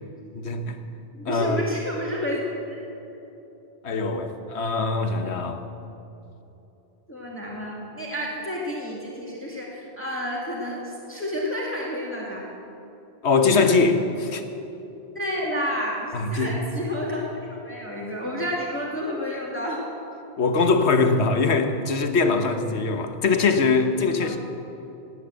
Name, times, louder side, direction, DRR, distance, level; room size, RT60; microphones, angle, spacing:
voice 1, 0.3-0.8 1.2-1.6 3.8-5.6 13.2-14.4 16.1-16.7 20.4-24.4, left 4 dB, 85° left, 7 dB, 1.4 m, -22 dB
voice 2, 1.1-2.8 7.1-12.4 15.1-19.8 24.2-24.3, equal, 10° left, -4 dB, 2.3 m, -30 dB
18.0 x 9.9 x 7.7 m, 3.0 s
omnidirectional pair, 1.1 m